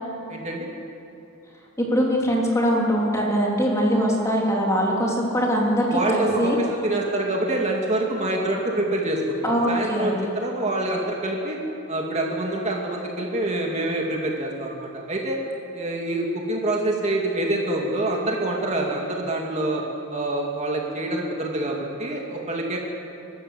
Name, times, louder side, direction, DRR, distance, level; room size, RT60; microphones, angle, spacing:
voice 1, 0.3-0.7 5.9-11.6 11.9-15.4 15.7-19.8 20.1-22.8, right 1 dB, 30° right, -1 dB, 2.3 m, -26 dB
voice 2, 1.8-6.6 9.4-10.2, equal, 15° left, -2 dB, 3.0 m, -22 dB
29.0 x 13.0 x 7.8 m, 2.8 s
head